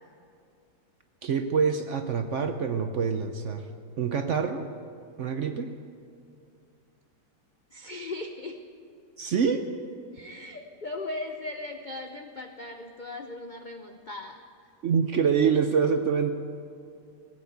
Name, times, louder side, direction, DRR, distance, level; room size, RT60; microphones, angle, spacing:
voice 1, 1.2-3.6 4.0-4.7 5.2-5.7 9.2-9.6 14.8-16.3, right 6 dB, 60° right, 7 dB, 0.8 m, -25 dB
voice 2, 7.7-8.6 10.1-14.4, left 2 dB, 65° left, 5 dB, 0.4 m, -38 dB
18.0 x 8.6 x 8.1 m, 2.4 s
omnidirectional pair, 1.9 m